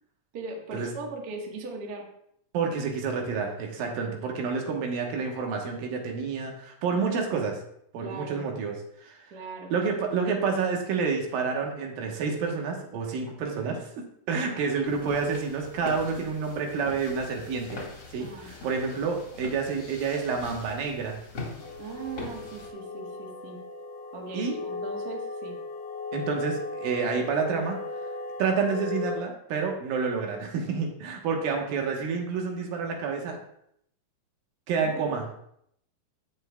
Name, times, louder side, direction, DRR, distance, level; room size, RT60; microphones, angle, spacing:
voice 1, 0.3-2.0 6.9-7.2 8.0-8.4 9.3-10.0 14.3-14.6 18.2-18.5 21.8-23.6 24.1-25.6 34.8-35.1, right 3 dB, 50° right, 0 dB, 1.1 m, -39 dB
voice 2, 2.5-7.6 7.9-8.8 9.0-9.2 9.7-13.8 14.3-17.8 18.1-21.2 24.3-24.6 26.1-27.8 28.4-33.4 34.7-35.3, right 5 dB, 85° right, 2 dB, 3.0 m, -29 dB
sound 1, 14.8-22.7, left 3 dB, 40° left, 1.9 m, -42 dB
sound 2, 21.6-29.2, left 3 dB, 85° left, 2.7 m, -36 dB
16.0 x 5.7 x 2.3 m, 0.72 s
omnidirectional pair, 4.0 m